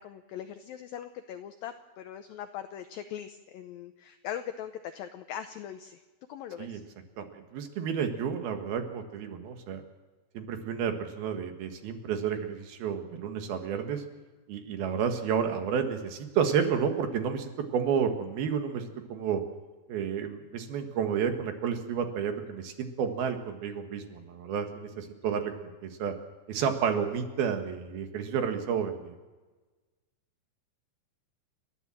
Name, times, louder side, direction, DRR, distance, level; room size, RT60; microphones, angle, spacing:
voice 1, 0.0-6.0 6.3-6.8, left 10 dB, 75° left, 8 dB, 2.2 m, -40 dB
voice 2, 7.2-9.8 10.3-14.0 14.5-19.4 19.9-26.1 26.5-29.1, right 7 dB, 65° right, 6 dB, 3.3 m, -31 dB
29.5 x 13.0 x 7.6 m, 1.2 s
omnidirectional pair, 4.9 m